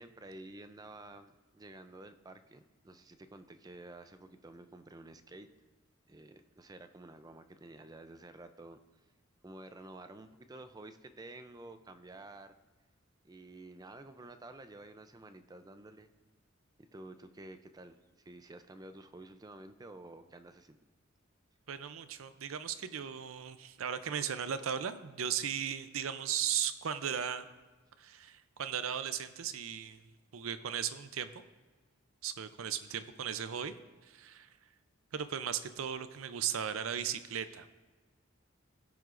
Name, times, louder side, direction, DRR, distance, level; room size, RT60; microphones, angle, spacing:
voice 1, 0.0-5.5 6.1-8.8 9.4-12.6 13.2-16.1 16.8-20.8, right 2 dB, 20° right, 9 dB, 0.4 m, -51 dB
voice 2, 21.7-27.5 28.0-30.0 30.3-31.3 32.2-33.7 34.1-34.5 35.1-37.7, right 8 dB, 80° right, 12 dB, 0.5 m, -36 dB
16.5 x 9.3 x 2.5 m, 1.3 s
head